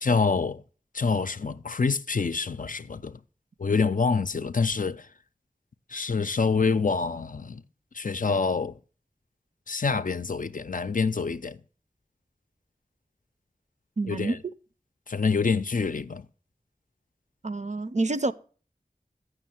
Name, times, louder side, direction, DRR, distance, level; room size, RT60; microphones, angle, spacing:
voice 1, 0.0-0.6 0.9-3.2 3.6-5.1 5.9-7.6 7.9-8.8 9.7-11.6 14.1-14.4 15.1-16.3, left 4 dB, 65° left, 0.5 m, -26 dB
voice 2, 14.0-14.4 17.4-18.3, right 2 dB, 50° right, 0.5 m, -27 dB
7.3 x 6.2 x 7.6 m
wide cardioid pair, 45°, 15 cm